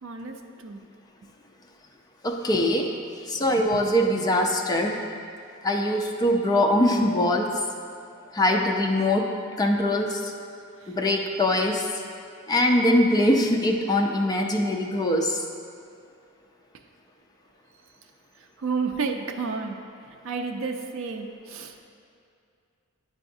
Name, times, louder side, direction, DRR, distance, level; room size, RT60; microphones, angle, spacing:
voice 1, 0.0-0.9 3.4-3.7 10.8-11.0 18.4-19.9 20.2-21.8, right 4 dB, 65° right, 4 dB, 0.4 m, -32 dB
voice 2, 2.2-2.9 3.3-5.0 5.6-7.6 8.3-9.3 9.6-10.3 10.9-11.9 12.5-15.4, left 1 dB, 20° left, 1 dB, 0.4 m, -22 dB
9.1 x 4.8 x 2.6 m, 2.4 s
head